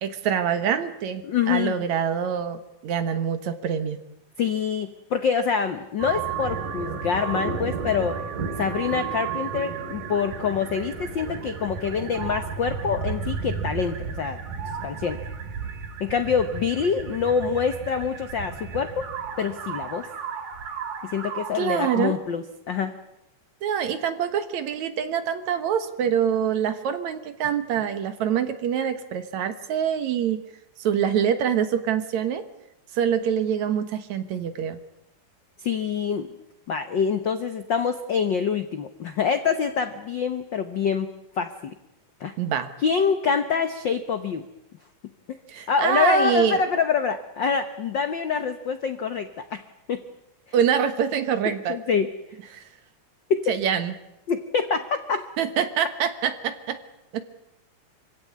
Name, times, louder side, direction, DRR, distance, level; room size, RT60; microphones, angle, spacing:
voice 1, 0.0-1.2 1.5-4.0 21.5-22.2 23.6-30.4 30.8-32.4 32.9-34.8 42.4-42.7 45.5-46.6 50.5-51.8 52.5-52.6 53.5-53.9 55.4-56.8 57.1-57.2, right 8 dB, 65° right, 10 dB, 2.6 m, -25 dB
voice 2, 1.2-1.7 4.4-8.2 8.6-14.4 14.8-15.2 16.0-19.1 19.4-20.1 21.0-23.0 35.6-36.3 36.7-41.1 41.4-41.7 42.2-42.3 42.8-44.4 45.3-45.4 45.7-49.6 49.9-50.0 51.7-52.1 53.3-53.6 54.3-55.2, left 6 dB, 75° left, 9 dB, 1.0 m, -25 dB
sound 1, 6.0-22.1, right 6 dB, 90° right, 3.6 m, -33 dB
25.5 x 16.5 x 9.6 m, 0.90 s
omnidirectional pair, 3.6 m